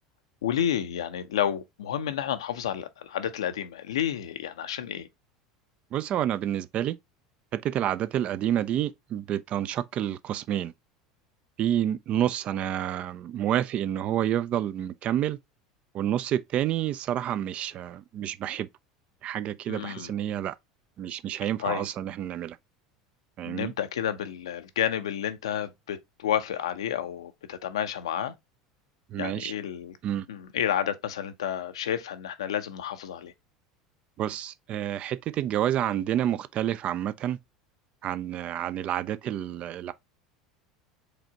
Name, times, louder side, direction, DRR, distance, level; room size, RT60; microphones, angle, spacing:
voice 1, 0.4-5.1 19.7-20.1 21.6-21.9 23.4-28.3 29.2-30.0 30.3-33.3, left 10 dB, 85° left, 0.6 m, -30 dB
voice 2, 5.9-7.0 7.5-10.7 11.6-15.4 15.9-18.7 19.2-20.5 21.0-22.6 23.4-23.7 29.1-29.5 30.0-30.3 34.2-37.4 38.0-39.9, right 11 dB, 45° right, 0.4 m, -29 dB
5.0 x 3.4 x 2.8 m
hypercardioid pair, 85°, 3 cm